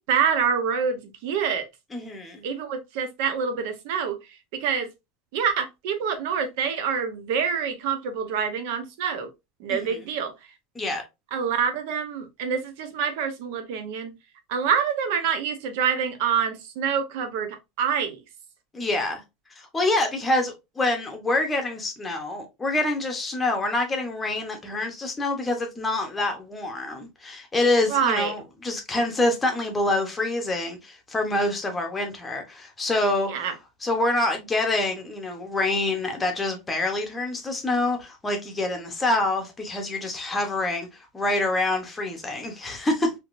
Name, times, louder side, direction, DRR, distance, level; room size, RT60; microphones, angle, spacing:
voice 1, 0.0-1.7 2.4-4.2 4.6-4.9 5.3-9.3 9.6-10.3 11.3-14.1 14.5-18.2 27.9-28.3 33.3-33.5, right 7 dB, 65° right, 0.8 m, -26 dB
voice 2, 1.9-2.4 9.7-10.0 10.7-11.0 18.7-19.2 19.6-33.5 33.8-43.1, left 2 dB, 10° left, 0.8 m, -26 dB
3.5 x 2.8 x 2.4 m
supercardioid pair, 160°, 0 cm